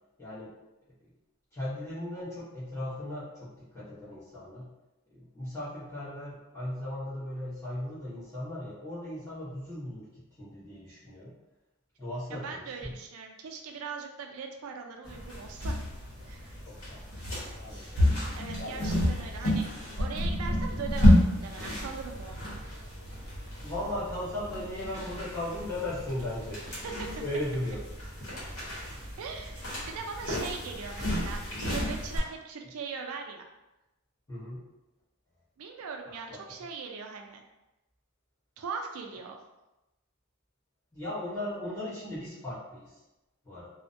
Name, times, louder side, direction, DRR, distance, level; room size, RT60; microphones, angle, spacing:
voice 1, 0.2-0.5 1.5-4.7 5.1-11.3 12.0-13.0 16.2-17.1 17.5-18.0 18.6-18.8 23.6-26.6 27.2-27.8 34.3-34.6 36.0-36.4 40.9-42.9 43.4-43.7, left 1 dB, 15° left, -13 dB, 1.0 m, -37 dB
voice 2, 12.3-15.7 16.2-16.5 18.4-22.6 26.7-27.1 29.1-31.4 31.7-33.4 35.6-37.4 38.6-39.4, right 5 dB, 80° right, 3 dB, 0.4 m, -40 dB
sound 1, 15.0-32.2, left 1 dB, 70° left, 0.9 m, -30 dB
2.5 x 2.1 x 2.5 m, 0.98 s
head